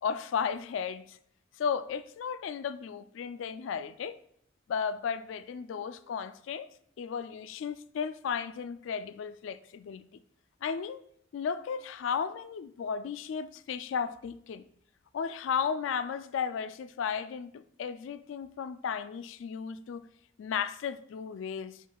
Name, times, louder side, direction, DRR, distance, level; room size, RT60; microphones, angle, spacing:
voice 1, 0.0-1.2 1.6-4.2 4.7-6.7 7.0-10.1 10.6-11.0 11.3-14.6 15.1-20.0 20.4-21.8, left 6 dB, 80° left, 0.3 m, -34 dB
7.2 x 5.6 x 2.3 m
head